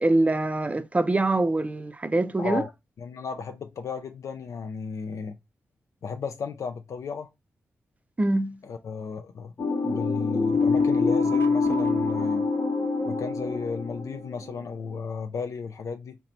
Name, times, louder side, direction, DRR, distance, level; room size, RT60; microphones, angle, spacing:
voice 1, 0.0-2.6 8.2-8.6, right 2 dB, 25° right, 0.5 m, -24 dB
voice 2, 2.4-2.7 3.0-5.4 6.0-7.3 8.6-9.5 9.8-12.5 13.1-16.2, left 5 dB, 70° left, 0.4 m, -34 dB
sound 1, 9.6-14.9, left 4 dB, 45° left, 1.1 m, -25 dB
3.0 x 2.2 x 3.9 m
supercardioid pair, 45°, 6 cm